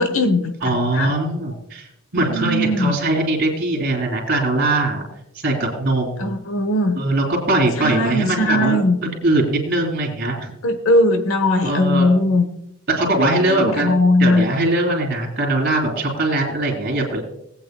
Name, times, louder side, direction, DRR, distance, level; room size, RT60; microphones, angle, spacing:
voice 1, 0.0-1.1 2.1-2.9 6.2-7.0 7.8-9.0 10.6-12.4 13.5-14.4, left 1 dB, 75° left, 8 dB, 1.1 m, -19 dB
voice 2, 0.6-1.9 2.1-5.0 5.4-6.3 7.0-10.5 11.6-12.1 12.9-13.9 14.2-17.2, right 2 dB, 50° right, -4 dB, 3.2 m, -21 dB
20.0 x 8.7 x 2.3 m, 0.76 s
head